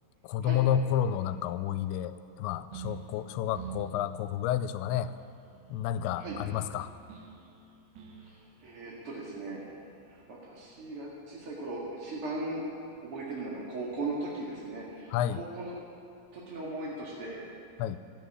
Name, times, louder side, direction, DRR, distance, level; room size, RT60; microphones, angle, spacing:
voice 1, 0.2-5.1 5.7-6.9 15.1-15.4 17.8-18.0, left 10 dB, 85° left, 12 dB, 2.9 m, -30 dB
sound 1, 2.7-10.2, right 7 dB, 85° right, 3.9 m, -48 dB
voice 2, 8.6-9.6 10.1-12.6 13.0-15.7 16.3-17.4, right 2 dB, 45° right, -5 dB, 2.0 m, -38 dB
14.5 x 9.0 x 9.7 m, 2.6 s
omnidirectional pair, 5.1 m